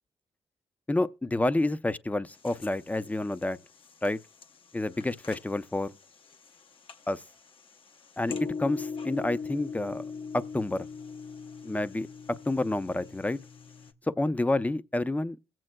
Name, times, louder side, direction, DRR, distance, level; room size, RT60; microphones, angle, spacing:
voice 1, 0.9-3.6 4.0-4.2 4.7-5.9 7.1-7.2 8.2-10.0 10.3-10.9 11.6-13.4 14.2-15.4, left 2 dB, 15° left, 0.5 m, -29 dB
sound 1, 2.3-13.9, left 5 dB, 60° left, 0.8 m, -41 dB
21.5 x 7.6 x 2.2 m
cardioid pair, 65°, 10 cm